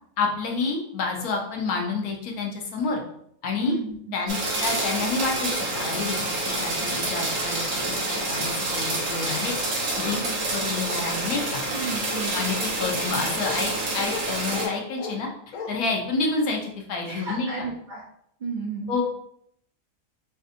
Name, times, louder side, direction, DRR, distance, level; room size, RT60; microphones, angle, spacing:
voice 1, 0.2-3.0 3.4-3.7 4.1-7.6 7.9-10.2 10.5-11.6 12.3-15.3 15.7-17.5 18.9-19.0, left 4 dB, 90° left, 1 dB, 1.3 m, -29 dB
voice 2, 3.6-4.2 10.1-10.5 11.7-12.4 17.1-18.0 18.4-19.0, right 4 dB, 45° right, -3 dB, 0.7 m, -33 dB
sound 1, 4.3-14.7, right 2 dB, 65° right, 1.4 m, -28 dB
Bark, 10.0-10.2 10.8-11.4 12.1-12.3 12.8-12.9 13.4-13.6 14.1-14.2 14.5-15.2 15.5-15.7, left 4 dB, 70° left, 1.0 m, -35 dB
5.3 x 2.6 x 2.6 m, 0.71 s
omnidirectional pair, 1.5 m